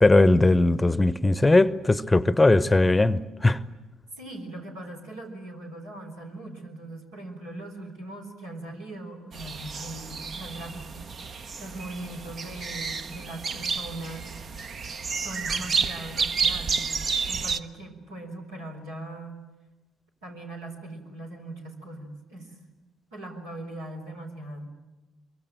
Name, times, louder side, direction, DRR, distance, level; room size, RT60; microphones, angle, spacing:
voice 1, 0.0-3.6, left 2 dB, 15° left, 0.8 m, -19 dB
voice 2, 4.2-11.0 11.6-14.3 15.2-17.0 17.3-19.4 20.2-22.6 23.1-24.7, right 1 dB, 80° right, 4.3 m, -40 dB
sound 1, 9.3-17.6, right 5 dB, 45° right, 0.9 m, -31 dB
24.0 x 23.5 x 9.0 m
figure-of-eight pair, 45°, 0 cm